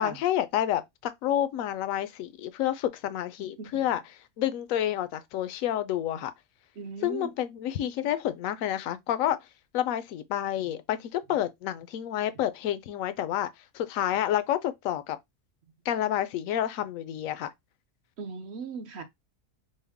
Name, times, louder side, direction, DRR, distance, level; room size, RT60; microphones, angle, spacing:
voice 1, 0.0-4.0 4.4-6.3 7.0-9.4 9.7-13.5 13.7-15.2 15.9-17.5, left 11 dB, 75° left, 1.0 m, -29 dB
voice 2, 6.8-7.3 18.2-19.0, right 5 dB, 60° right, 0.9 m, -38 dB
5.4 x 2.1 x 3.5 m
omnidirectional pair, 1.4 m